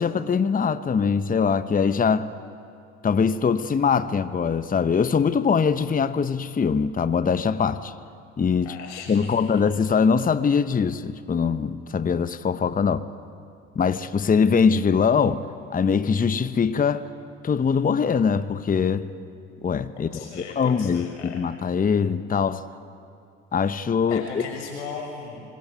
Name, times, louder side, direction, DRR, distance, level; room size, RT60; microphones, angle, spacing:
voice 1, 0.0-2.3 3.0-7.9 8.4-8.7 9.1-13.0 13.8-15.4 15.7-17.1 17.4-19.1 19.6-22.6 23.5-24.2, left 6 dB, 25° left, 12 dB, 1.0 m, -22 dB
voice 2, 8.6-9.4 20.0-21.4 24.1-25.4, left 5 dB, 80° left, 2 dB, 5.9 m, -37 dB
25.5 x 20.5 x 9.3 m, 2.4 s
hypercardioid pair, 60°, 35 cm